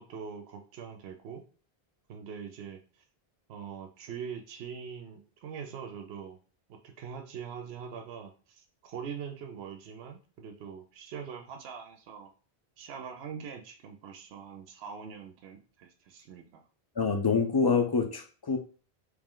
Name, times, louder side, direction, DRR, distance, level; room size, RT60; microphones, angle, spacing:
voice 1, 0.0-1.4 2.1-2.8 3.5-6.4 6.7-12.3 12.8-16.6, right 7 dB, 85° right, 5 dB, 0.8 m, -43 dB
voice 2, 17.0-18.6, left 5 dB, 35° left, 5 dB, 0.4 m, -26 dB
3.2 x 3.1 x 3.7 m, 0.38 s
omnidirectional pair, 1.0 m